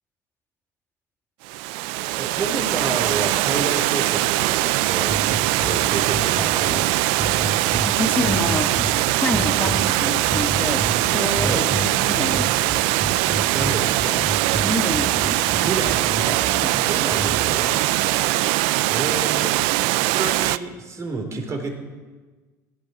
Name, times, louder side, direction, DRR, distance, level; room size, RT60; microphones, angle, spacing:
Water, 1.4-20.6, right 18 dB, 75° right, 0.5 m, -21 dB
voice 1, 2.1-5.2 5.6-7.1 11.4-11.7 13.5-14.2 15.6-16.0 16.2-16.4 16.8-17.8 18.9-19.5 19.9-21.8, right 3 dB, 35° right, 4 dB, 4.0 m, -30 dB
sound 1, 4.3-17.4, right 5 dB, 55° right, 2.1 m, -46 dB
sound 2, 5.1-17.7, right 1 dB, 15° right, 3.2 m, -31 dB
voice 2, 7.9-8.7 9.2-12.5 14.6-15.4 16.5-16.7 18.1-18.2, left 2 dB, 20° left, 5 dB, 1.7 m, -28 dB
17.0 x 10.5 x 7.7 m, 1.3 s
supercardioid pair, 90°, 9 cm